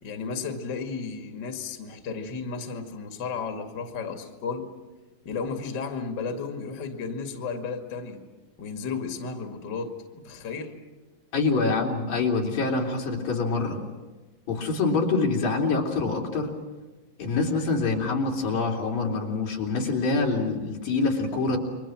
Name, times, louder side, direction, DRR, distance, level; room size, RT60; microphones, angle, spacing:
voice 1, 0.0-4.7 5.2-8.2 8.6-10.8, left 5 dB, 35° left, 5 dB, 2.5 m, -33 dB
voice 2, 11.3-13.8 14.5-16.5 17.2-21.6, left 3 dB, 80° left, -1 dB, 5.3 m, -25 dB
29.5 x 24.0 x 6.1 m, 1.2 s
omnidirectional pair, 3.9 m